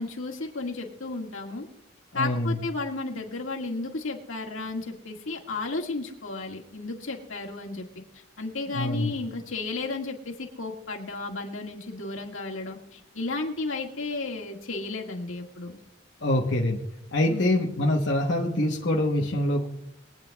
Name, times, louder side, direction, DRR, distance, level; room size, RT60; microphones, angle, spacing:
voice 1, 0.0-1.7 2.1-7.9 8.1-15.8 17.3-17.8, left 3 dB, 90° left, 0 dB, 1.9 m, -33 dB
voice 2, 2.1-2.6 8.7-9.1 16.2-16.8 17.1-19.7, left 1 dB, 60° left, -1 dB, 1.1 m, -25 dB
23.0 x 9.0 x 2.3 m, 0.80 s
head